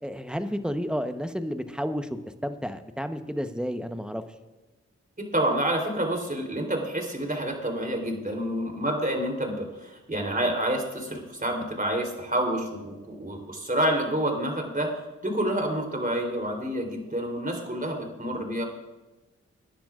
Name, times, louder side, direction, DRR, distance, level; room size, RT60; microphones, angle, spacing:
voice 1, 0.0-4.2, equal, 5° right, 9 dB, 1.0 m, -31 dB
voice 2, 5.2-14.9 15.2-18.7, right 1 dB, 30° right, 1 dB, 3.5 m, -28 dB
22.0 x 10.0 x 2.5 m, 1.1 s
cardioid pair, 45°, 29 cm